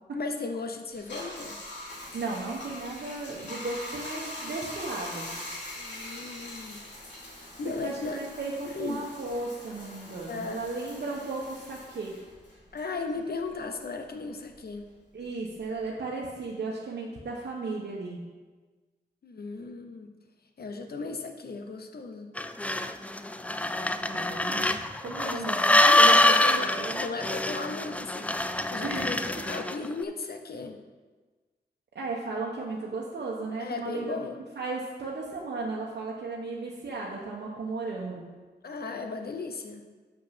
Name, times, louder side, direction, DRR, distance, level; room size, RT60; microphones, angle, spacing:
voice 1, 0.1-1.6 5.8-6.8 7.6-8.2 8.7-9.0 10.3-10.6 12.7-14.9 19.2-20.1 20.6-22.3 25.1-25.6 25.8-30.8 33.6-34.4 38.6-39.8, left 3 dB, 60° left, 6 dB, 0.9 m, -36 dB
Bathtub (filling or washing), 0.9-13.7 14.0-15.9, left 1 dB, 80° left, 2.8 m, -43 dB
voice 2, 2.1-5.3 7.6-12.2 15.1-18.2 24.0-24.7 25.0-27.0 28.8-29.4 31.9-34.2 34.5-38.3, right 3 dB, 70° right, -4 dB, 1.1 m, -35 dB
sound 1, 22.4-29.9, left 1 dB, 10° left, 0.3 m, -24 dB
6.5 x 5.7 x 5.8 m, 1.3 s
wide cardioid pair, 95°, 18 cm